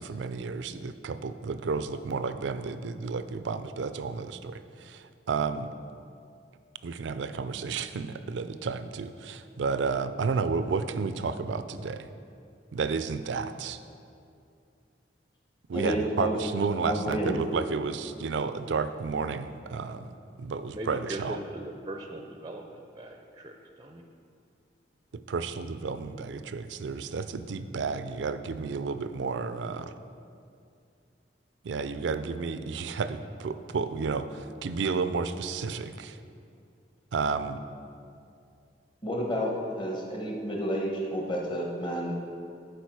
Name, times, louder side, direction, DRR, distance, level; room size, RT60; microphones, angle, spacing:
voice 1, 0.0-5.7 6.8-12.1 12.7-13.8 15.7-20.1 20.4-21.4 25.3-29.8 31.6-36.2 37.1-37.6, right 5 dB, 85° right, 11 dB, 0.4 m, -31 dB
voice 2, 15.7-16.3 16.8-17.4 39.0-42.2, equal, 25° left, -1 dB, 1.1 m, -30 dB
voice 3, 20.7-24.0, right 1 dB, 25° right, 3 dB, 0.4 m, -40 dB
11.5 x 4.6 x 4.7 m, 2.4 s
head